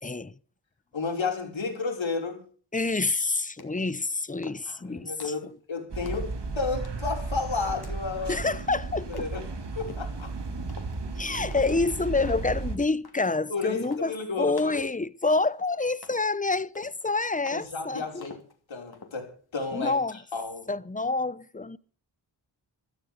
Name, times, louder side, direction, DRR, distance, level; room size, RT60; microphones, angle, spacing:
voice 1, 0.0-0.3 2.7-5.3 8.3-9.3 11.2-14.1 14.4-18.2 19.7-20.2 20.7-21.8, left 3 dB, 15° left, 0.7 m, -27 dB
voice 2, 0.9-2.4 4.7-8.5 9.1-9.4 9.8-10.3 13.5-14.8 17.5-18.4 18.7-20.7, left 4 dB, 80° left, 5.2 m, -32 dB
sound 1, 3.6-3.9 4.4-4.8 5.2-5.5 6.0-6.4 6.8-7.1 7.6-7.9 8.3-8.6 9.1-9.5 9.9-10.1 10.7-11.0 11.5-11.8 12.3-12.6 13.0-13.3 13.8-14.1 14.6-14.8 15.3-15.7 16.0-16.3 16.7-17.1 17.5-17.7 18.2-18.5 18.9-19.2, left 4 dB, 55° left, 2.9 m, -48 dB
sound 2, 5.9-12.8, right 3 dB, 60° right, 2.4 m, -34 dB
16.0 x 13.5 x 5.1 m
wide cardioid pair, 105°, 46 cm